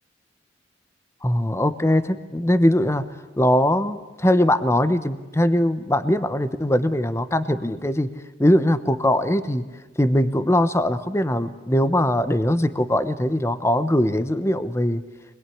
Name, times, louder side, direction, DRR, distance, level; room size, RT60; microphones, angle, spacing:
voice 1, 1.2-3.0 3.4-8.1 8.4-9.6 10.0-15.0, left 1 dB, 15° left, 13 dB, 0.9 m, -21 dB
25.0 x 21.5 x 10.0 m, 1.2 s
head